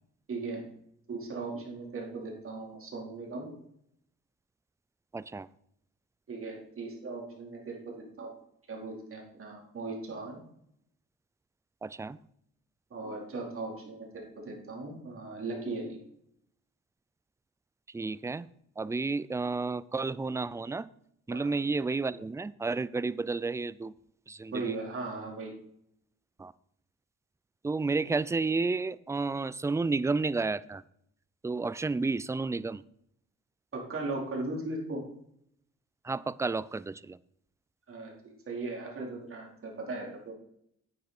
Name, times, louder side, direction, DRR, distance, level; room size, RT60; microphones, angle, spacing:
voice 1, 0.3-0.6 1.1-3.5 6.3-8.3 8.7-10.4 12.9-16.0 21.3-21.5 24.5-25.5 33.7-35.0 37.9-40.3, right 3 dB, 45° right, -1 dB, 4.1 m, -38 dB
voice 2, 5.1-5.5 11.8-12.2 17.9-18.5 18.8-20.9 21.3-23.9 24.3-24.8 26.4-26.5 27.6-30.8 31.4-32.8 36.0-37.2, right 3 dB, 10° right, 18 dB, 0.4 m, -31 dB
9.8 x 9.2 x 4.4 m, 0.72 s
cardioid pair, 90°, 30 cm